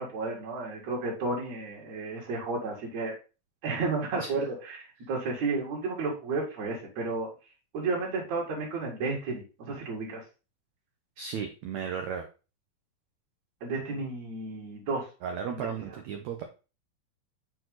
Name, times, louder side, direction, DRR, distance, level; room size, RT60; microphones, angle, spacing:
voice 1, 0.0-3.1 3.6-7.3 7.7-10.2 13.6-15.1 15.5-16.0, right 3 dB, 55° right, -4 dB, 2.9 m, -32 dB
voice 2, 4.2-4.5 11.2-12.3 15.2-16.4, right 7 dB, 85° right, 5 dB, 1.6 m, -35 dB
6.1 x 4.7 x 3.8 m, 0.31 s
omnidirectional pair, 4.1 m